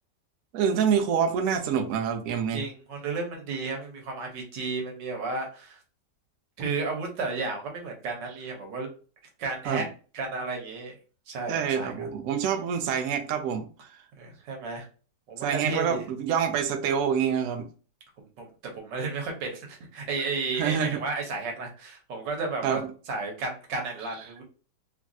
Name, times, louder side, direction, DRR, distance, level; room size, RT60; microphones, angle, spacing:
voice 1, 0.5-2.6 9.7-9.8 11.5-13.6 15.4-17.7 20.6-21.0 22.6-22.8, right 7 dB, 70° right, 4 dB, 0.8 m, -26 dB
voice 2, 2.5-5.8 6.6-8.9 9.4-9.9 10.1-10.9 11.3-12.1 14.2-14.8 15.3-16.0 18.2-22.8 23.1-24.4, right 3 dB, 90° right, 2 dB, 1.5 m, -33 dB
3.3 x 2.5 x 2.3 m, 0.37 s
omnidirectional pair, 1.9 m